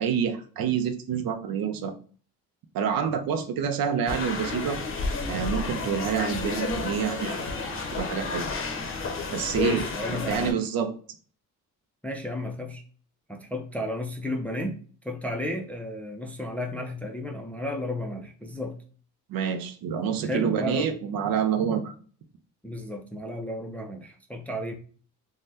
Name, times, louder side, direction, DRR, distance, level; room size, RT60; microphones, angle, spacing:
voice 1, 0.0-1.9 2.7-4.8 5.3-7.5 7.9-8.5 9.3-10.9 19.3-21.9, right 7 dB, 70° right, 7 dB, 0.6 m, -27 dB
sound 1, 4.1-10.5, left 3 dB, 35° left, 0.7 m, -31 dB
voice 2, 9.7-10.6 12.0-12.8 13.3-14.8 15.0-18.8 20.2-20.9 22.6-24.7, left 1 dB, 5° left, 3 dB, 0.3 m, -33 dB
2.7 x 2.1 x 3.3 m, 0.43 s
cardioid pair, 105°, 36 cm